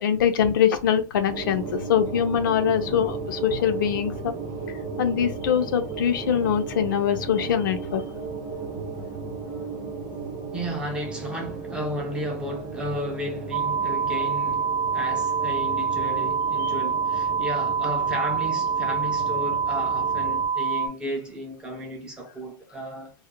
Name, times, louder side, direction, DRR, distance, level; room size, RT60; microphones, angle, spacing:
voice 1, 0.0-4.3 5.0-8.0 16.6-16.7, left 8 dB, 80° left, 0.5 m, -23 dB
sound 1, 1.3-20.4, right 4 dB, 25° right, 0.8 m, -35 dB
voice 2, 10.5-23.1, equal, 10° right, 0.4 m, -34 dB
sound 2, 13.5-20.9, right 6 dB, 75° right, 0.5 m, -25 dB
2.3 x 2.0 x 2.9 m
supercardioid pair, 170°, 11 cm